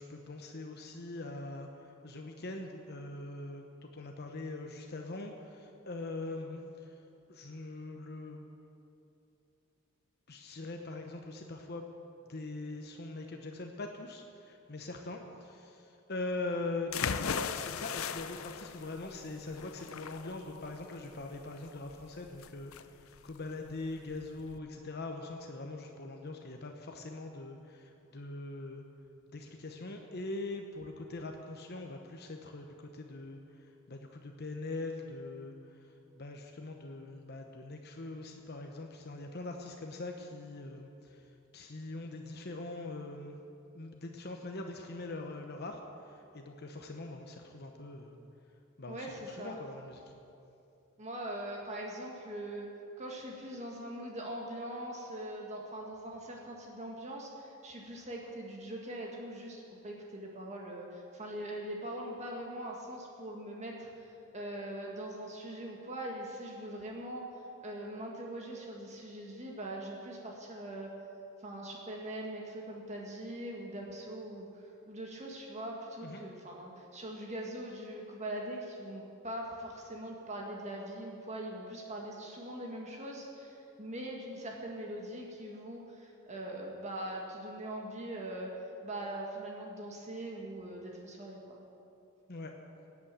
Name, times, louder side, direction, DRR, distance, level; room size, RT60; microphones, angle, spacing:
voice 1, 0.0-7.0 7.3-8.4 10.3-11.8 12.3-28.8 29.3-43.4 43.7-48.2 48.8-50.1 76.0-76.2 92.3-92.5, left 2 dB, 50° left, 3 dB, 0.9 m, -42 dB
sound 1, 16.9-24.6, left 7 dB, 80° left, 0.6 m, -39 dB
voice 2, 48.9-49.6 51.0-52.7 53.0-67.2 67.6-70.9 71.4-88.5 88.8-91.6, right 1 dB, 35° right, -1 dB, 1.7 m, -42 dB
18.0 x 8.5 x 7.6 m, 2.7 s
head